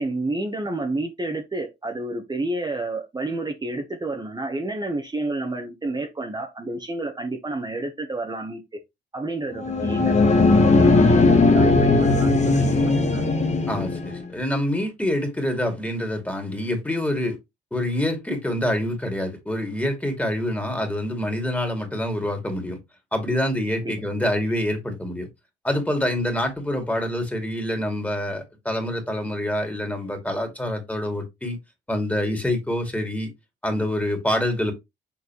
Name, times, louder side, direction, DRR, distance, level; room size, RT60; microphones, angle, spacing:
voice 1, 0.0-8.6 9.1-13.3 23.8-23.9, right 2 dB, 20° right, 1.2 m, -30 dB
sound 1, 9.5-14.2, left 3 dB, 35° left, 1.3 m, -18 dB
voice 2, 13.7-17.3 17.7-22.8 23.1-25.3 25.6-31.6 31.9-33.3 33.6-34.7, left 1 dB, 5° left, 2.4 m, -26 dB
7.0 x 4.5 x 3.0 m
cardioid pair, 90°, 20 cm